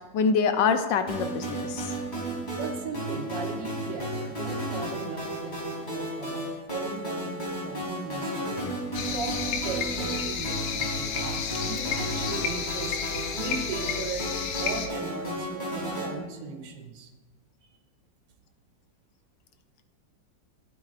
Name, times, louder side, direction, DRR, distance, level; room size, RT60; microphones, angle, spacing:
voice 1, 0.1-2.0, left 5 dB, 80° left, 8 dB, 1.4 m, -25 dB
sound 1, 1.1-16.1, right 1 dB, 25° left, 3.1 m, -33 dB
voice 2, 2.6-8.7 9.1-13.0 13.3-17.1, right 5 dB, 80° right, 4 dB, 1.6 m, -38 dB
sound 2, 8.9-14.9, left 7 dB, 65° left, 1.2 m, -32 dB
12.0 x 8.6 x 2.5 m, 1.3 s
omnidirectional pair, 2.0 m